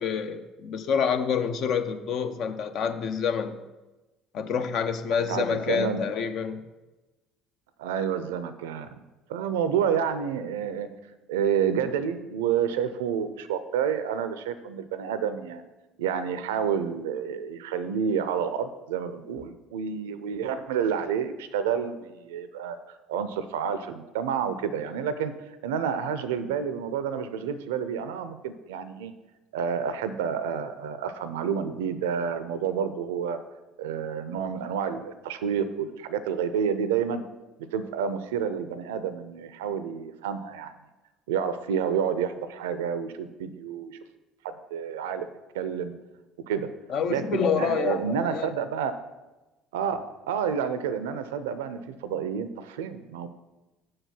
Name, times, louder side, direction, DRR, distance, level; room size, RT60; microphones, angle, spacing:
voice 1, 0.0-3.6 4.3-6.6 46.9-48.5, left 6 dB, 55° left, 9 dB, 0.6 m, -27 dB
voice 2, 5.3-6.0 7.8-8.9 9.3-10.9 11.3-15.6 16.0-22.8 23.1-29.1 29.5-33.4 33.8-37.2 37.7-40.7 41.3-44.0 44.4-45.3 45.5-45.9 46.5-46.7 47.1-48.9 49.7-50.0 50.3-53.3, right 7 dB, 75° right, 11 dB, 0.4 m, -29 dB
6.3 x 4.7 x 5.9 m, 1.1 s
hypercardioid pair, 60°, 0 cm